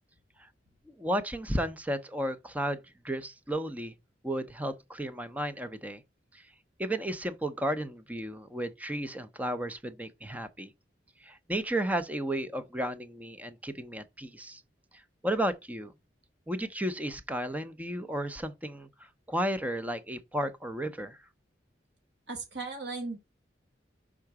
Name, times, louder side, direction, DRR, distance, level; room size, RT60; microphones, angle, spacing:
voice 1, 1.0-2.8 3.0-3.9 4.2-6.0 6.3-6.4 6.8-10.7 11.2-14.6 14.9-15.9 16.5-21.2, right 1 dB, 10° right, 0.6 m, -33 dB
voice 2, 22.3-23.2, right 3 dB, 65° right, 1.1 m, -36 dB
5.7 x 3.7 x 4.6 m
head